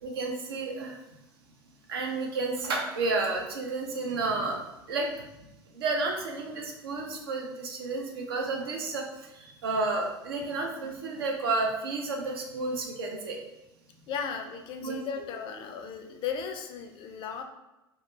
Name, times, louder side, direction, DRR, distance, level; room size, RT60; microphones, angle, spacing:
voice 1, 0.0-1.0 1.9-5.3 5.7-13.4 14.8-15.0, right 3 dB, 70° right, 2 dB, 0.5 m, -31 dB
voice 2, 14.1-17.4, left 6 dB, 40° left, 5 dB, 0.4 m, -36 dB
2.2 x 2.2 x 2.9 m, 0.94 s
figure-of-eight pair, 75°, 13 cm